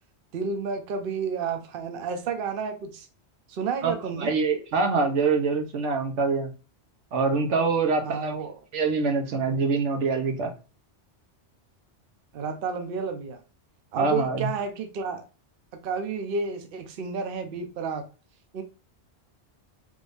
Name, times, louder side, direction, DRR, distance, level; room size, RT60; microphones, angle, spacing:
voice 1, 0.3-3.1 3.5-4.3 8.0-8.5 12.3-13.4 13.9-15.2 15.7-18.0 18.5-18.6, right 5 dB, 55° right, 0.8 m, -31 dB
voice 2, 3.8-6.5 7.1-8.3 8.7-10.5 14.0-14.5, right 4 dB, 85° right, 1.1 m, -25 dB
3.5 x 2.6 x 3.3 m
omnidirectional pair, 1.2 m